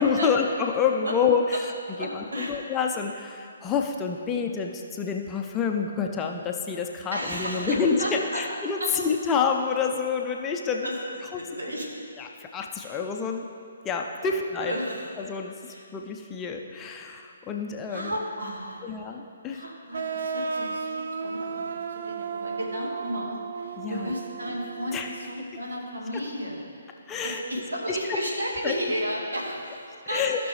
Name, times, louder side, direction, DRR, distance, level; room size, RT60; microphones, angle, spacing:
voice 1, 0.0-1.7 2.0-10.9 11.3-11.4 12.2-13.4 13.8-14.8 15.2-15.5 15.9-18.1 18.8-19.6 23.8-24.1 24.9-25.1 26.1-26.2 27.1-27.4 27.9-28.2 28.6-28.7 30.1-30.5, left 6 dB, 15° left, 2 dB, 0.6 m, -28 dB
voice 2, 2.0-2.5 7.1-8.5 8.8-8.9 10.8-11.0 11.3-11.9 12.8-12.9 14.2-15.1 15.6-15.9 17.9-18.9 19.5-26.6 27.2-30.5, equal, 75° right, -1 dB, 1.9 m, -33 dB
sound 1, 19.9-25.4, right 5 dB, 55° right, 0.4 m, -34 dB
15.5 x 6.0 x 3.5 m, 2.4 s
figure-of-eight pair, 135°, 0 cm